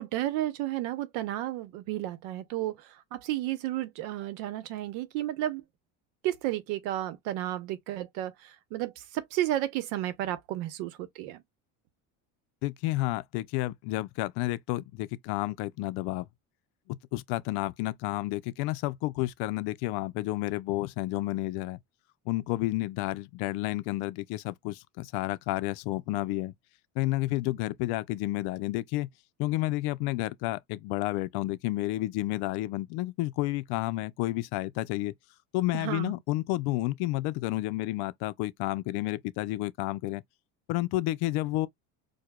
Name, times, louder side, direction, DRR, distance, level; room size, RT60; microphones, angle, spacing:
voice 1, 0.0-5.6 6.2-11.4 35.7-36.1, right 14 dB, 90° right, 0.8 m, -32 dB
voice 2, 12.6-16.3 16.9-21.8 22.3-26.5 27.0-29.1 29.4-35.1 35.5-40.2 40.7-41.7, left 18 dB, 70° left, 0.5 m, -31 dB
4.7 x 2.2 x 2.2 m
cardioid pair, 130°, 41 cm